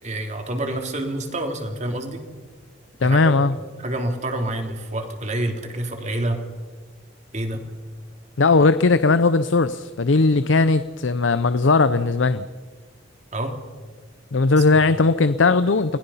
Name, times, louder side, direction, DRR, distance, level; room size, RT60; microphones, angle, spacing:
voice 1, 0.0-2.2 3.0-3.4 3.8-6.4 7.3-7.6 13.3-13.6 14.8-14.9, right 1 dB, 40° right, 4 dB, 3.1 m, -27 dB
voice 2, 3.0-3.5 8.4-12.4 14.3-16.0, left 3 dB, 85° left, 13 dB, 0.7 m, -18 dB
29.5 x 20.0 x 5.7 m, 1.5 s
head